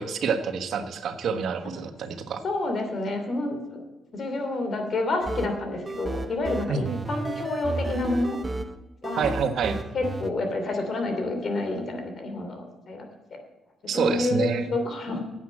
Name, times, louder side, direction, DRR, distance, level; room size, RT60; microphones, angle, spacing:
voice 1, 0.0-2.4 6.7-7.0 9.2-9.8 13.9-14.7, right 6 dB, 65° right, 8 dB, 1.2 m, -27 dB
voice 2, 2.4-3.8 4.1-8.4 9.0-9.3 9.9-13.1 13.9-15.2, left 2 dB, 50° left, 5 dB, 2.8 m, -28 dB
sound 1, 5.2-10.3, right 2 dB, 25° right, 0.7 m, -33 dB
9.7 x 8.3 x 7.6 m, 1.2 s
cardioid pair, 90°, 0 cm